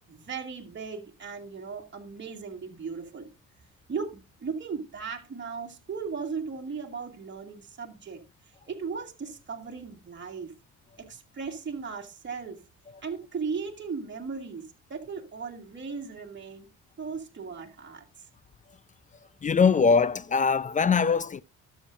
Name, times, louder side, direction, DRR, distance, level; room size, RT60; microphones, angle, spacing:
voice 1, 0.1-3.3 3.9-8.2 8.7-10.5 11.0-12.6 13.0-16.7 17.0-18.0, right 5 dB, 40° right, 2.1 m, -37 dB
voice 2, 19.4-21.4, left 5 dB, 25° left, 0.4 m, -22 dB
12.5 x 7.4 x 2.6 m
cardioid pair, 90°, 30 cm